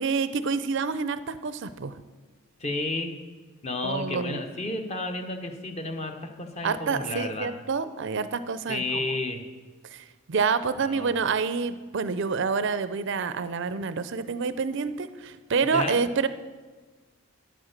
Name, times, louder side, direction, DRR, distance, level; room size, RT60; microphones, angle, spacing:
voice 1, 0.0-1.9 3.8-4.4 6.6-9.0 9.9-16.3, right 5 dB, 55° right, 13 dB, 0.5 m, -28 dB
voice 2, 2.6-3.1 3.6-7.5 8.7-9.4 10.8-11.1 15.6-16.0, left 2 dB, 30° left, 5 dB, 1.0 m, -32 dB
10.0 x 8.8 x 6.6 m, 1.4 s
head